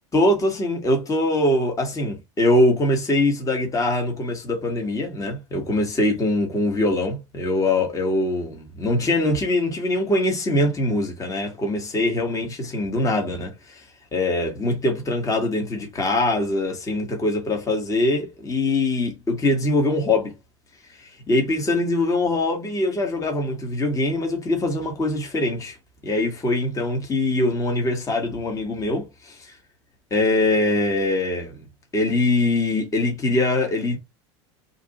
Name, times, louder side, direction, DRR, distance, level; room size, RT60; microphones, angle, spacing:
voice 1, 0.1-13.8 14.1-20.3 21.0-25.8 26.0-29.5 30.1-31.6 31.9-34.0, left 2 dB, 20° left, 1.3 m, -23 dB
2.7 x 2.5 x 4.0 m
hypercardioid pair, 100°, 15 cm